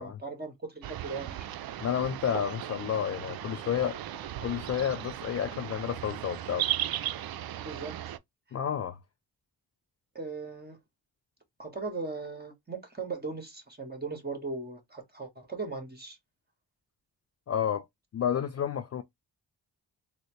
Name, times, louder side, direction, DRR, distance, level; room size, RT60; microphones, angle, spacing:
voice 1, 0.0-1.5 7.3-8.0 10.1-10.8 11.6-16.2, right 4 dB, 20° right, 1.5 m, -38 dB
sound 1, 0.8-8.2, right 12 dB, 55° right, 0.5 m, -36 dB
voice 2, 1.8-4.0 4.4-6.7 8.5-9.0 17.5-17.8 18.1-19.0, left 9 dB, 40° left, 0.4 m, -30 dB
3.9 x 2.0 x 3.1 m
supercardioid pair, 45°, 44 cm